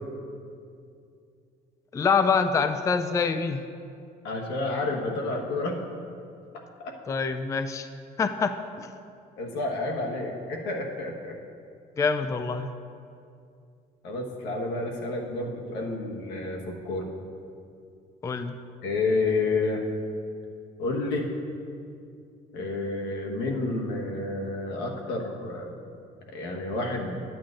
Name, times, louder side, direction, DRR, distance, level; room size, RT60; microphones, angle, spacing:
voice 1, 1.9-3.6 7.1-7.9 8.2-8.9 12.0-12.7 18.2-18.6, left 5 dB, 20° left, 9 dB, 0.3 m, -25 dB
voice 2, 4.2-5.7 6.8-6.9 9.4-11.3 14.0-17.1 18.8-19.8 20.8-21.3 22.5-25.7 26.3-27.2, left 3 dB, 85° left, 0 dB, 1.3 m, -30 dB
13.0 x 8.7 x 2.5 m, 2.5 s
cardioid pair, 110°, 17 cm